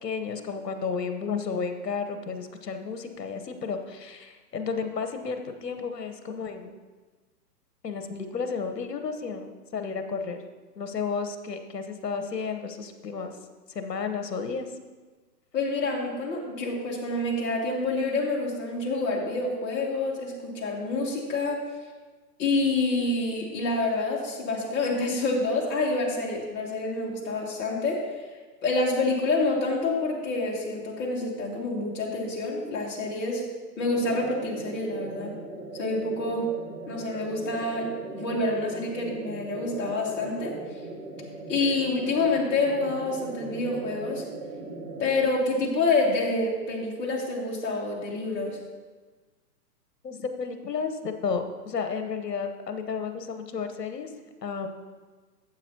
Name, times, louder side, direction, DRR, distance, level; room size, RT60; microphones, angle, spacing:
voice 1, 0.0-6.8 7.8-10.4 10.8-13.4 13.7-14.7 50.0-54.1 54.4-54.8, left 5 dB, 75° left, 7 dB, 1.2 m, -32 dB
voice 2, 15.5-21.6 22.4-28.3 28.6-33.4 33.8-35.3 35.7-36.4 36.9-40.5 41.5-44.2 45.0-48.6, left 2 dB, 20° left, -3 dB, 2.2 m, -27 dB
sound 1, 33.8-45.2, right 3 dB, 15° right, 1.0 m, -40 dB
14.5 x 7.9 x 2.9 m, 1.3 s
figure-of-eight pair, 120°, 49 cm